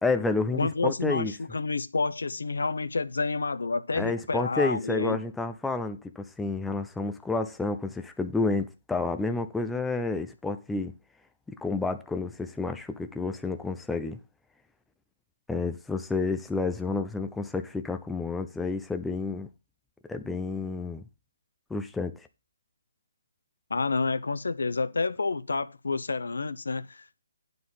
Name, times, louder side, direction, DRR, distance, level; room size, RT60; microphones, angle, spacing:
voice 1, 0.0-1.3 3.9-10.9 11.6-14.2 15.5-19.5 20.1-21.0 21.7-22.1, left 3 dB, 5° left, 0.4 m, -30 dB
voice 2, 0.5-5.2 23.7-27.2, left 3 dB, 85° left, 0.8 m, -29 dB
9.5 x 4.0 x 6.9 m
hypercardioid pair, 170°, 0 cm